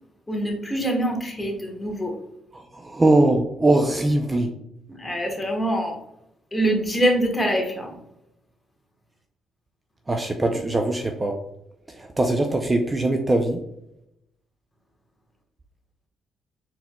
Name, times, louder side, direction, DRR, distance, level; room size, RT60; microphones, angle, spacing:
voice 1, 0.3-2.1 4.9-6.0 6.5-8.0, right 1 dB, 15° left, 2 dB, 1.1 m, -24 dB
voice 2, 2.5-4.5 10.1-11.4 11.9-13.6, right 2 dB, 25° right, 4 dB, 0.5 m, -21 dB
4.2 x 4.1 x 2.2 m, 0.82 s
cardioid pair, 90°, 0 cm